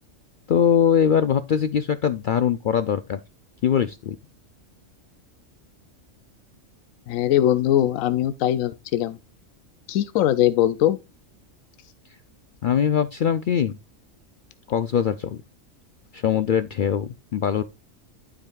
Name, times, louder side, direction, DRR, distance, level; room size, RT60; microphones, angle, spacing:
voice 1, 0.5-3.2 3.6-4.2 12.6-13.8 14.7-15.4 16.1-17.6, left 8 dB, 70° left, 0.4 m, -22 dB
voice 2, 7.1-9.2 9.9-11.0, left 12 dB, 90° left, 1.0 m, -21 dB
12.0 x 5.0 x 2.3 m
omnidirectional pair, 1.4 m